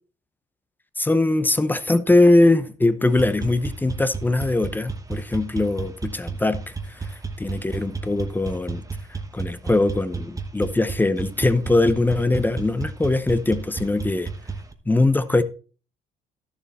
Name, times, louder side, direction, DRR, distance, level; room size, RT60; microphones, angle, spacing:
voice 1, 1.0-8.8 9.3-14.3 14.9-15.4, left 2 dB, 10° left, 0.7 m, -21 dB
sound 1, 3.1-14.7, right 4 dB, 20° right, 1.0 m, -33 dB
12.0 x 7.0 x 4.2 m
cardioid pair, 110°, 17 cm